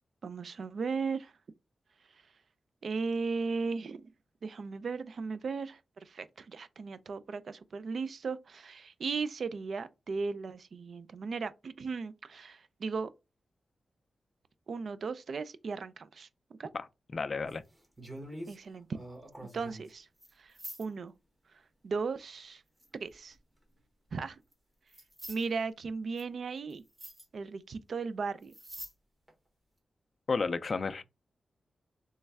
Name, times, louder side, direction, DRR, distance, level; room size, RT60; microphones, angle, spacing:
voice 1, 0.2-1.3 2.8-4.0 4.4-13.1 14.7-16.3 16.6-16.7 18.5-18.9 19.4-20.1 20.4-20.5 20.8-21.1 21.8-22.6 22.9-23.4 24.1-24.4 25.3-26.8 27.3-28.5, right 4 dB, 60° right, 0.3 m, -36 dB
voice 2, 17.1-17.6 30.3-31.0, left 4 dB, 40° left, 0.3 m, -32 dB
sound 1, 17.4-18.6 18.9-19.9 20.2-20.3 20.5-20.8 22.8-23.3 24.5-24.6 24.9-25.4 26.2-26.3 26.7-26.8 27.0-27.2 28.4-28.9 29.3-29.4, right 1 dB, 15° right, 1.0 m, -45 dB
3.3 x 3.1 x 3.4 m
wide cardioid pair, 140°, 0 cm